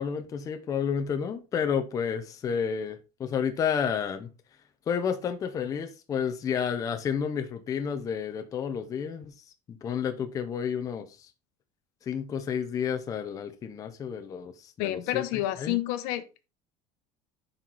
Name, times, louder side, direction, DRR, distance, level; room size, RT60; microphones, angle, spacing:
voice 1, 0.0-4.3 4.9-9.3 9.7-11.3 12.0-15.8, left 7 dB, 20° left, 0.6 m, -31 dB
voice 2, 14.8-16.5, left 14 dB, 65° left, 1.0 m, -30 dB
10.0 x 4.6 x 4.0 m
cardioid pair, 175°, 16 cm